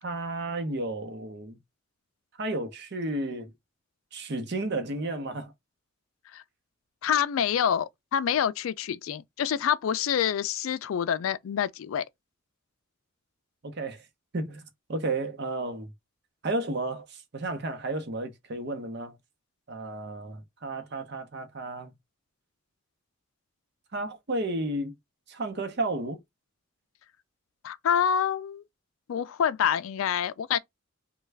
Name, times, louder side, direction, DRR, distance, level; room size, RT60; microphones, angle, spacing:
voice 1, 0.0-1.6 2.4-3.5 4.1-5.5 13.6-14.0 14.3-15.9 16.4-19.2 19.7-21.9 23.9-24.9 25.3-26.2, right 2 dB, 55° right, 0.7 m, -32 dB
voice 2, 7.0-12.0 27.6-28.6 29.1-30.6, left 8 dB, 80° left, 0.3 m, -27 dB
3.2 x 2.3 x 3.2 m
head